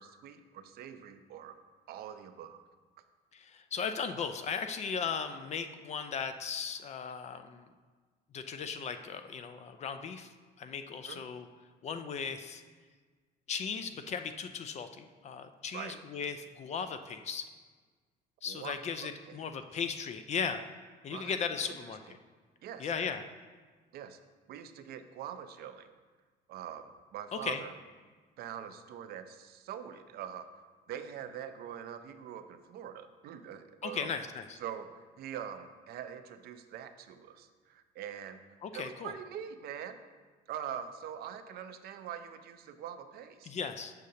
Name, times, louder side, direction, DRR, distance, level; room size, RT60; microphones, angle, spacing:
voice 1, 0.0-1.6 1.9-2.6 11.0-11.2 15.7-16.0 18.5-19.5 21.1-21.9 22.6-22.9 23.9-24.2 24.5-25.9 26.5-27.7 28.4-34.1 34.6-38.4 38.7-40.0 40.5-43.5, right 9 dB, 65° right, 9 dB, 0.5 m, -44 dB
voice 2, 3.3-7.7 8.3-10.3 10.6-11.5 11.8-12.6 13.5-17.5 18.4-20.6 21.0-22.0 22.8-23.2 27.3-27.6 33.8-34.6 38.6-39.1 43.4-43.9, left 6 dB, 40° left, 9 dB, 0.4 m, -37 dB
6.5 x 6.4 x 2.8 m, 1.4 s
cardioid pair, 110°, 17 cm